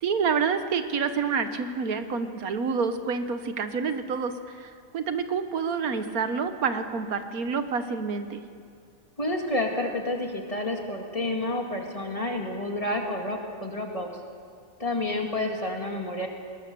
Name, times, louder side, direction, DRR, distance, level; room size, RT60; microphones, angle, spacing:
voice 1, 0.0-8.4, right 5 dB, 85° right, 9 dB, 1.6 m, -28 dB
voice 2, 9.2-14.1 14.8-16.3, left 2 dB, 25° left, 2 dB, 2.2 m, -29 dB
20.5 x 19.5 x 6.9 m, 2.3 s
omnidirectional pair, 1.5 m